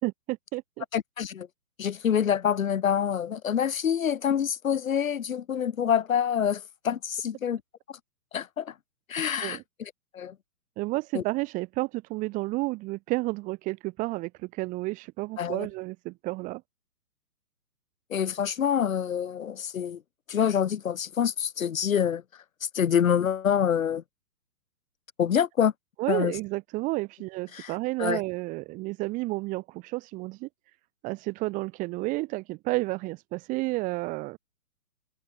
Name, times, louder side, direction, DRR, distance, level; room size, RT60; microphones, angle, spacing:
voice 1, 0.0-0.8 9.4-9.6 10.8-16.6 26.0-30.5 31.0-34.4, right 22 dB, 15° right, 2.4 m, -31 dB
voice 2, 0.9-1.5 1.8-7.6 8.3-8.7 9.1-10.3 11.1-11.2 15.4-15.7 18.1-20.0 20.3-22.2 22.6-24.0 25.2-25.7 26.1-26.3 27.5-27.7 28.0-28.2, left 8 dB, 55° left, 4.7 m, -26 dB
hypercardioid pair, 165°, 47 cm